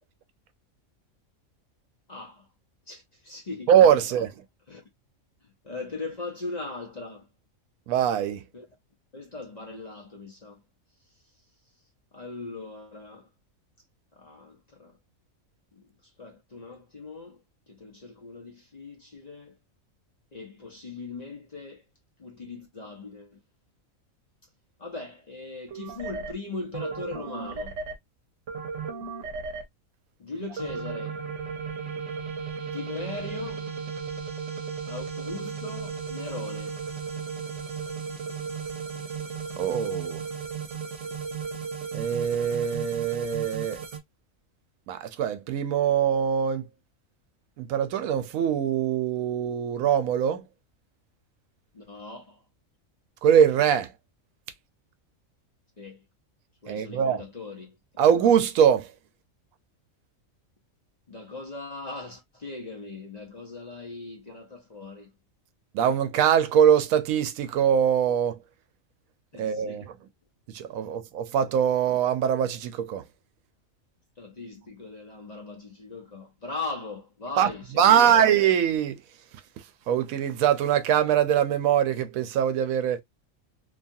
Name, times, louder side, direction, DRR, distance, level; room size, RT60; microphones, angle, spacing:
voice 1, 2.1-2.5 2.9-3.7 4.1-4.2 4.7-4.8 5.4-7.3 8.5-8.7 9.1-10.6 12.1-13.3 14.2-15.0 15.7-15.9 16.2-17.4 17.7-19.6 20.3-21.8 22.2-23.4 24.8-27.8 30.2-31.2 32.7-33.7 34.8-36.8 51.7-52.4 55.8-56.0 56.6-57.8 61.1-65.1 69.3-69.9 74.2-78.3, left 3 dB, 40° left, 0.7 m, -39 dB
voice 2, 3.7-4.3 7.9-8.4 39.6-40.2 41.9-43.8 44.9-46.6 47.6-50.4 53.2-53.9 56.7-57.2 58.0-58.9 65.7-68.4 69.4-69.8 70.5-73.0 77.4-77.5 77.8-79.0 79.9-83.0, right 9 dB, 85° right, 1.0 m, -22 dB
sound 1, 25.7-26.3 26.7-27.9 28.5-29.6 30.6-44.0, right 5 dB, 65° right, 1.0 m, -35 dB
2.8 x 2.3 x 2.6 m
omnidirectional pair, 1.4 m